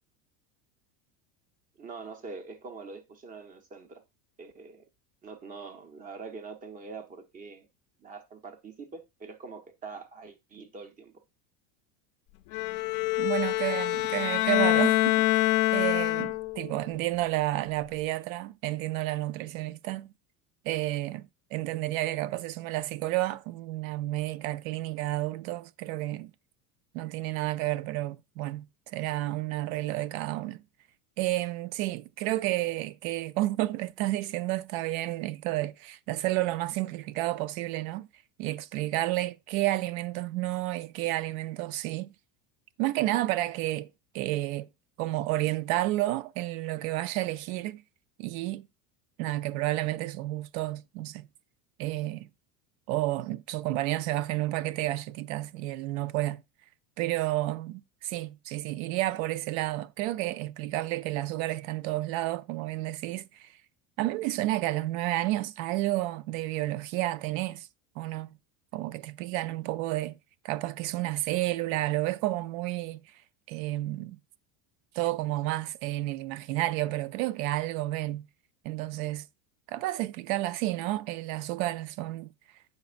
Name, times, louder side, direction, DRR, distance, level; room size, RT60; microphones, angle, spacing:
voice 1, 1.8-4.0 4.4-4.8 5.2-7.7 8.0-11.1, right 4 dB, 20° right, 0.7 m, -44 dB
Bowed string instrument, 12.5-16.7, left 18 dB, 45° left, 0.5 m, -25 dB
voice 2, 13.2-20.1 20.6-26.3 26.9-30.6 31.2-38.1 38.4-42.1 42.8-43.9 44.1-44.7 45.0-47.8 48.2-48.7 49.2-51.3 51.8-52.3 52.9-56.4 57.0-63.5 64.0-67.7 68.0-68.4 68.7-70.2 70.4-73.0 73.5-74.2 74.9-78.2 78.6-79.3 79.7-82.3, right 16 dB, 65° right, 0.6 m, -31 dB
8.1 x 5.3 x 2.4 m
supercardioid pair, 150°, 45 cm